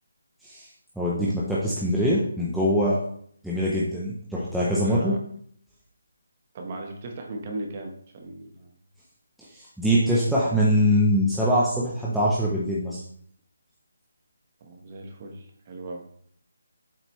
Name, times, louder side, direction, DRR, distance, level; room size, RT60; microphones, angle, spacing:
voice 1, 1.0-3.0 3.4-5.1 9.4-13.0, equal, ahead, -8 dB, 0.6 m, -23 dB
voice 2, 4.8-5.2 6.5-8.7 10.4-10.5 14.6-16.1, right 2 dB, 20° right, 3 dB, 1.1 m, -37 dB
8.8 x 7.5 x 3.1 m, 0.63 s
hypercardioid pair, 180°, 0 cm